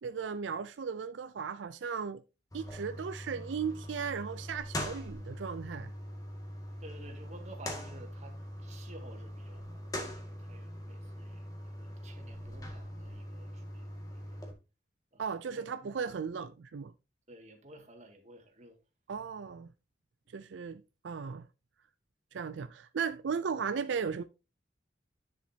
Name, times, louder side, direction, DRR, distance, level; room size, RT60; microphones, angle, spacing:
voice 1, 0.0-2.2 2.5-5.9 15.2-16.9 19.1-19.7 20.3-21.5 22.3-24.2, right 6 dB, 85° right, 0.4 m, -36 dB
sound 1, 2.5-14.5, left 1 dB, 20° left, 2.0 m, -42 dB
voice 2, 6.8-13.9 14.1-14.4 15.1-16.5 17.3-18.8 22.3-22.4, right 1 dB, 40° right, 1.9 m, -54 dB
10.0 x 7.3 x 2.8 m
head